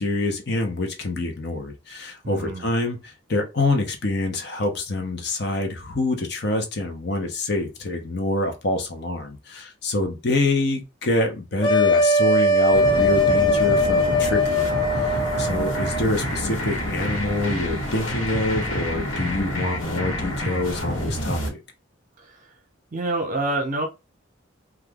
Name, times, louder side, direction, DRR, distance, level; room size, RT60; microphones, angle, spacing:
voice 1, 0.0-21.6, left 2 dB, 55° left, 0.8 m, -26 dB
voice 2, 2.2-2.6 15.4-15.7 22.2-22.5 22.9-23.9, right 2 dB, 40° right, 0.8 m, -28 dB
sound 1, 11.6-16.0, left 1 dB, 25° left, 0.4 m, -20 dB
sound 2, 12.7-21.5, equal, 90° left, 1.3 m, -28 dB
2.9 x 2.4 x 3.5 m
head